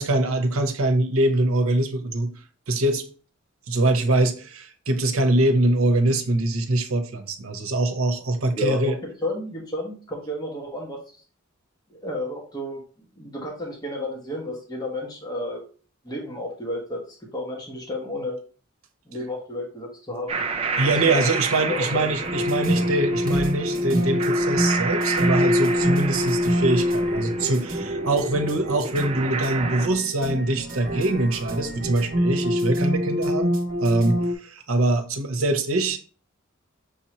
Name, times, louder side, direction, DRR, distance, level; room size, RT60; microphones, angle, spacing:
voice 1, 0.0-2.3 2.7-3.0 3.7-9.0 20.8-36.0, right 2 dB, 80° right, 0.8 m, -23 dB
voice 2, 8.6-8.9 9.2-11.0 11.9-12.8 13.2-15.6 16.0-17.0 17.3-18.4 19.1-20.4 20.8-21.3 21.7-22.1, left 1 dB, 20° left, 1.3 m, -31 dB
sound 1, 20.3-29.9, right 4 dB, 25° right, 0.4 m, -30 dB
sound 2, 22.2-34.3, equal, 45° right, 0.9 m, -25 dB
6.2 x 2.9 x 3.0 m
head